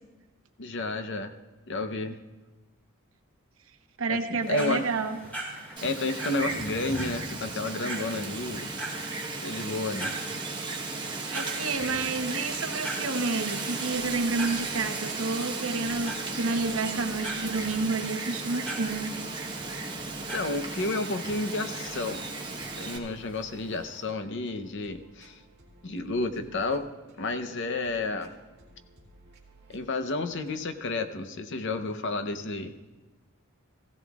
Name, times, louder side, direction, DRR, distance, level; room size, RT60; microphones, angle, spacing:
voice 1, 0.6-1.3 1.7-2.2 4.1-4.2 4.5-4.8 5.8-8.7 9.4-10.1 20.3-22.3 22.8-25.4 25.8-26.9 27.2-28.3 29.7-32.7, left 2 dB, 60° left, 9 dB, 0.8 m, -31 dB
voice 2, 4.0-5.2 11.3-19.2, right 3 dB, 70° right, 6 dB, 0.9 m, -30 dB
sound 1, 4.4-24.0, right 1 dB, 5° left, 3.6 m, -42 dB
Wind, 5.8-23.0, right 3 dB, 20° right, 1.2 m, -35 dB
sound 2, 13.9-30.8, right 2 dB, 50° right, 1.9 m, -57 dB
16.0 x 15.5 x 2.4 m, 1.2 s
head